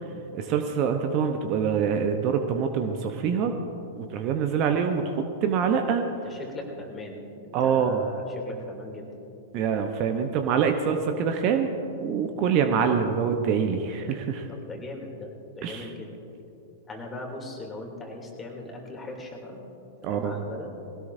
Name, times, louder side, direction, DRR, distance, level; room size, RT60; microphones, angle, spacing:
voice 1, 0.3-3.5 4.0-6.0 7.5-8.0 9.5-11.7 12.0-14.5 15.6-15.9 20.0-20.4, right 7 dB, 40° right, 6 dB, 1.0 m, -25 dB
voice 2, 6.2-9.1 12.3-12.4 14.5-15.3 15.6-16.1 16.9-19.6 20.0-20.7, left 2 dB, 15° left, -1 dB, 3.1 m, -39 dB
21.0 x 17.5 x 2.8 m, 2.8 s
figure-of-eight pair, 100°, 0 cm